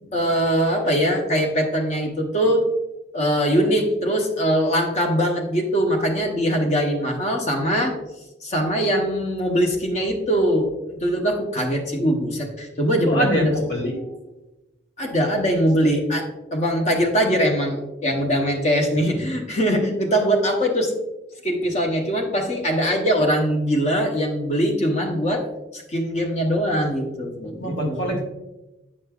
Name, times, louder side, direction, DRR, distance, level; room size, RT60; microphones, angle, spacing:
voice 1, 0.0-2.7 3.1-7.9 8.4-13.5 15.0-20.9 21.4-25.4 25.7-28.2, equal, 35° left, 1 dB, 1.0 m, -22 dB
voice 2, 12.9-14.0 27.6-28.2, equal, 90° left, -1 dB, 1.9 m, -24 dB
8.6 x 5.3 x 2.4 m, 0.99 s
head